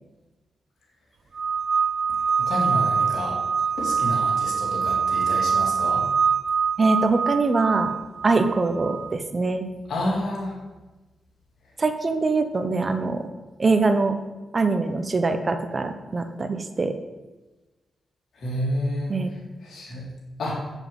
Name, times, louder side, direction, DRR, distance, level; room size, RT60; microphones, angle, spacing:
sound 1, 1.4-9.1, right 6 dB, 55° right, 0.3 m, -24 dB
voice 1, 2.4-3.4 3.8-6.0 9.9-10.6 18.3-19.1 19.6-20.0 20.4-20.6, left 1 dB, 75° left, -3 dB, 3.0 m, -29 dB
voice 2, 6.8-7.9 8.2-9.7 11.8-13.3 13.6-14.2 14.5-16.9 19.1-19.3, right 3 dB, 40° right, 8 dB, 0.9 m, -23 dB
7.8 x 7.2 x 5.6 m, 1.2 s
cardioid pair, 75°, 0 cm